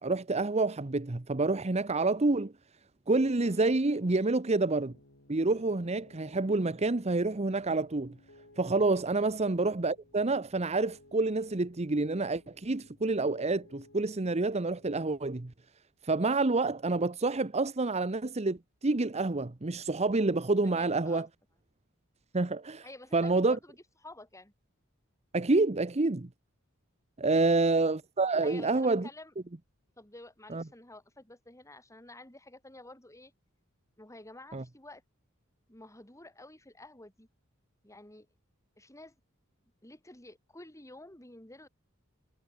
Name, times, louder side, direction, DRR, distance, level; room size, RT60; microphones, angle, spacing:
voice 1, 0.0-2.5 3.1-4.9 5.3-8.2 8.6-15.5 16.0-21.3 22.3-22.8 23.1-23.6 25.3-26.3 27.2-29.1 30.5-30.6 34.5-34.6, right 3 dB, 30° right, 0.9 m, -28 dB
voice 2, 3.4-3.7 9.1-9.4 20.6-21.3 22.8-23.8 24.0-24.5 28.4-29.3 30.0-33.3 34.0-35.0 35.7-37.3 37.8-38.3 38.8-39.2 39.8-41.7, left 2 dB, 15° left, 5.5 m, -51 dB
Piano, 4.9-15.3, left 1 dB, 60° left, 6.8 m, -59 dB
head